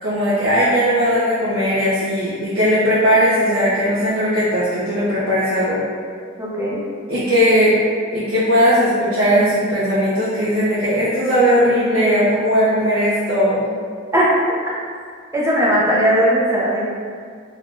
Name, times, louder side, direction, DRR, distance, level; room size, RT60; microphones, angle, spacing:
voice 1, 0.0-5.8 7.1-7.7 8.1-13.6, equal, 75° right, -11 dB, 0.6 m, -18 dB
voice 2, 6.4-6.8 14.1-14.3 15.3-16.9, equal, 15° right, -6 dB, 0.5 m, -17 dB
3.5 x 2.2 x 2.5 m, 2.1 s
head